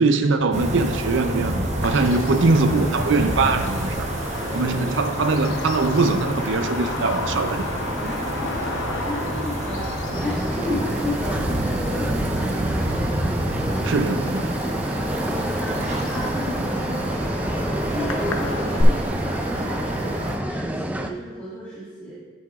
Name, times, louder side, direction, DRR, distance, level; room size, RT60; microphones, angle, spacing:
voice 1, 0.0-1.6 1.8-4.1 4.5-7.7 13.8-14.5, right 3 dB, 70° right, 8 dB, 0.5 m, -21 dB
sound 1, 0.5-20.4, right 1 dB, 35° right, 0.9 m, -28 dB
Bird vocalization bird call bird song, 1.8-18.8, left 3 dB, 85° left, 0.7 m, -35 dB
voice 2, 8.0-8.7 9.1-10.0 10.2-13.1 15.1-20.1 20.4-22.1, left 1 dB, 10° left, -9 dB, 1.6 m, -33 dB
sound 2, 10.1-21.1, right 1 dB, 10° right, 0.3 m, -29 dB
9.6 x 8.8 x 2.4 m, 1.4 s
head